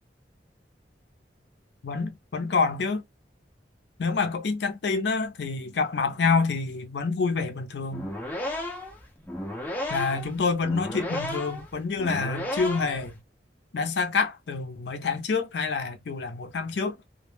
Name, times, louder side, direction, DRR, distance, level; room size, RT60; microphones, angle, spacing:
voice 1, 1.8-3.0 4.0-8.1 9.9-13.1 13.7-17.0, left 4 dB, 70° left, 0.5 m, -27 dB
sound 1, 7.8-13.1, left 1 dB, 10° left, 0.4 m, -34 dB
2.1 x 2.0 x 3.0 m
head